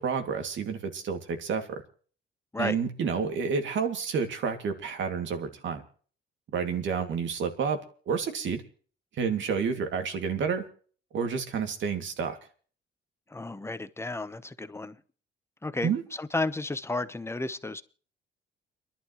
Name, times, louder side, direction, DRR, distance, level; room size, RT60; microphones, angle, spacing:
voice 1, 0.0-1.8 2.6-5.8 6.5-7.8 8.1-8.6 9.2-10.6 11.1-12.4 15.8-16.0, right 6 dB, 70° right, 2.5 m, -29 dB
voice 2, 13.3-15.0 15.6-17.8, left 2 dB, 15° left, 1.0 m, -32 dB
30.0 x 11.5 x 3.1 m
cardioid pair, 90°, 20 cm